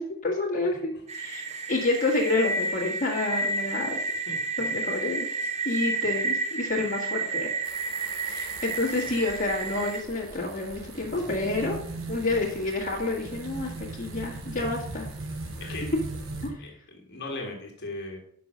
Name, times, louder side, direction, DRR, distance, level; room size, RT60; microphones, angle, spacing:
voice 1, 0.0-4.0 4.6-5.3 5.6-7.5 8.3-11.8 12.1-15.1 15.6-16.0 16.4-16.5, left 2 dB, 40° left, -3 dB, 1.7 m, -29 dB
sound 1, 1.1-10.0, right 3 dB, 35° right, 0.7 m, -31 dB
sound 2, 7.6-16.5, right 2 dB, 90° right, 1.3 m, -39 dB
voice 2, 11.0-11.7 15.6-15.9 16.6-18.2, left 2 dB, 55° left, 1 dB, 1.8 m, -39 dB
5.9 x 5.4 x 6.3 m, 0.62 s
head